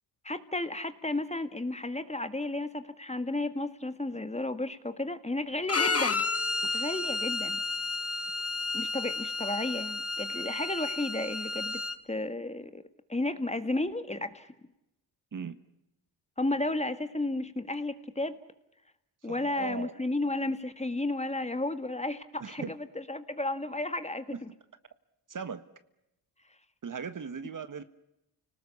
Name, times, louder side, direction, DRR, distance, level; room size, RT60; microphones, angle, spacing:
voice 1, 0.2-6.2 6.7-7.6 8.7-11.8 12.1-12.8 13.1-14.5 16.4-18.4 19.2-24.5, left 2 dB, 15° left, 10 dB, 1.9 m, -33 dB
Bowed string instrument, 5.7-12.0, left 3 dB, 35° left, 1.9 m, -31 dB
voice 2, 19.3-20.0 22.4-22.7 24.3-24.4 25.3-25.6 26.8-27.8, right 6 dB, 45° right, 11 dB, 1.6 m, -38 dB
29.5 x 19.0 x 7.1 m, 0.89 s
cardioid pair, 60°, 42 cm